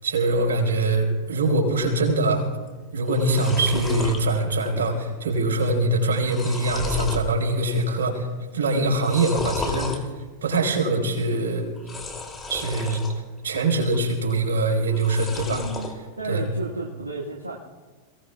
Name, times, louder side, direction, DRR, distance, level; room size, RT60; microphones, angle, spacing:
voice 1, 0.0-2.5 2.9-8.3 8.5-10.1 10.4-11.7 12.5-13.0 13.4-15.6 16.3-16.4, right 2 dB, 65° right, 1 dB, 4.8 m, -23 dB
sound 1, 2.7-2.8 3.0-4.2 4.7-5.1 5.3-5.4 6.0-7.3 7.7-8.2 8.9-10.0 11.8-13.1 13.5-14.2 14.9-15.9, left 3 dB, 15° left, 3.0 m, -33 dB
voice 2, 8.5-8.9 15.4-15.9 16.2-17.6, right 2 dB, 80° right, -2 dB, 1.8 m, -33 dB
29.5 x 18.5 x 2.4 m, 1.4 s
figure-of-eight pair, 90°, 0 cm